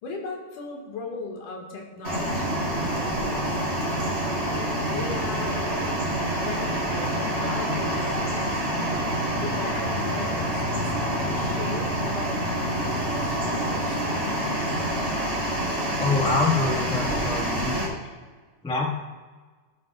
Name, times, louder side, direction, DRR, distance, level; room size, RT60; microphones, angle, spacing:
voice 1, 0.0-3.7 4.4-6.0 6.4-12.3 12.7-14.7, left 3 dB, 80° left, 0 dB, 3.4 m, -38 dB
sound 1, 2.0-17.9, right 1 dB, 20° right, 3.8 m, -27 dB
voice 2, 16.0-17.9 18.6-18.9, left 3 dB, 10° left, -2 dB, 0.3 m, -25 dB
18.5 x 9.5 x 2.5 m, 1.4 s
omnidirectional pair, 3.6 m